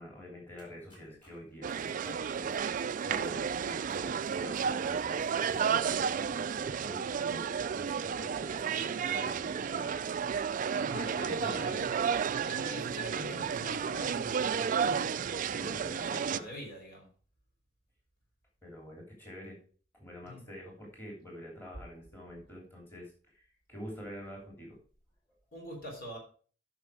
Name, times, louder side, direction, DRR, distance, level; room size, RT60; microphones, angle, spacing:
voice 1, 0.0-10.0 10.9-11.8 15.6-16.5 18.6-19.6 19.9-24.8, equal, 10° left, -2 dB, 3.1 m, -47 dB
sound 1, 0.6-5.9, left 1 dB, 25° left, 4.8 m, -63 dB
sound 2, 1.6-16.4, right 7 dB, 40° right, 0.3 m, -32 dB
voice 2, 10.7-11.9 12.4-15.3 15.6-17.1 20.2-20.4 25.5-26.2, left 1 dB, 55° left, 0 dB, 3.5 m, -44 dB
9.7 x 6.1 x 4.7 m, 0.42 s
head